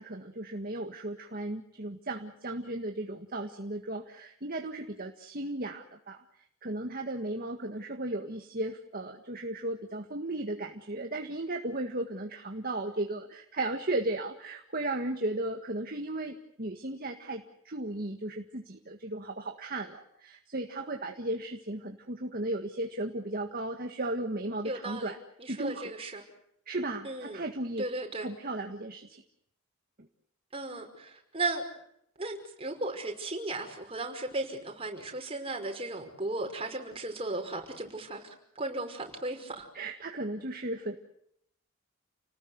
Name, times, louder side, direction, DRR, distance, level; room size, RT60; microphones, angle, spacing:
voice 1, 0.0-6.2 6.6-25.2 25.5-26.0 26.7-27.9 28.2-29.2 39.7-41.0, right 2 dB, 45° right, 4 dB, 1.7 m, -35 dB
voice 2, 24.6-26.2 27.0-27.4 27.8-28.3 30.5-31.6 32.2-39.7, right 2 dB, 25° right, 3 dB, 5.4 m, -36 dB
30.0 x 19.5 x 8.1 m, 0.74 s
head